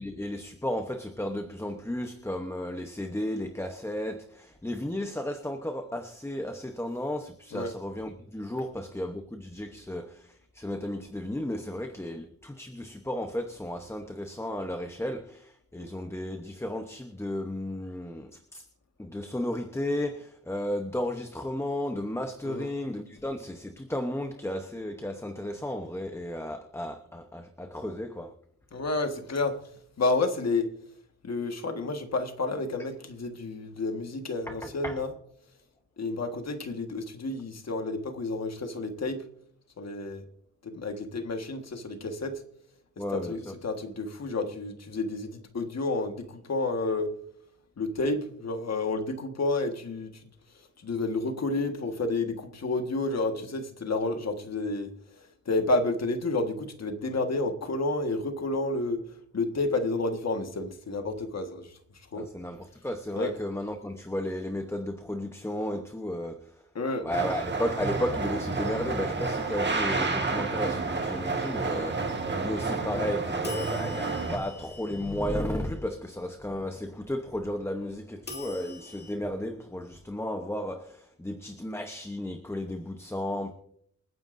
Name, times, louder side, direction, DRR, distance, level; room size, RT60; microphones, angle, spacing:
voice 1, 0.0-18.6 19.0-28.3 34.5-35.0 43.0-43.5 62.2-66.6 67.0-83.5, left 1 dB, 10° left, 0.9 m, -34 dB
voice 2, 28.7-29.6 30.0-30.7 31.2-35.1 36.0-39.2 39.8-40.2 40.6-42.4 43.1-47.1 47.8-50.1 50.8-54.9 55.4-59.0 59.3-61.7 62.1-62.3 63.2-63.3 66.7-67.1 72.9-73.0, left 2 dB, 60° left, 1.6 m, -30 dB
sound 1, 67.1-74.4, right 3 dB, 35° right, 1.8 m, -30 dB
sound 2, 73.4-75.7 78.3-79.1, left 3 dB, 35° left, 2.3 m, -44 dB
28.0 x 9.5 x 2.6 m
wide cardioid pair, 150°, 29 cm